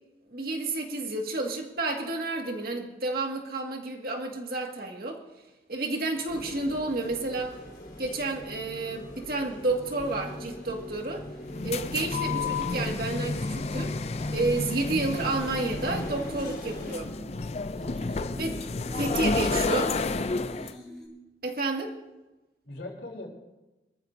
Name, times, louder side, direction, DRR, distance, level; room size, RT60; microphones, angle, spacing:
voice 1, 0.3-5.2 5.7-7.5 8.0-11.2 11.6-13.9 14.3-17.1 18.4-18.6 19.0-19.9 21.4-21.9, right 2 dB, 55° right, 2 dB, 2.1 m, -30 dB
sound 1, 6.3-17.0, left 1 dB, 60° left, 4.2 m, -43 dB
sound 2, 8.9-21.1, equal, 5° left, 3.4 m, -46 dB
sound 3, 11.4-20.7, left 3 dB, 35° left, 0.5 m, -31 dB
voice 2, 18.2-18.6 19.4-20.6 22.6-23.3, left 1 dB, 85° left, -2 dB, 3.9 m, -40 dB
25.0 x 14.0 x 2.8 m, 1.0 s
head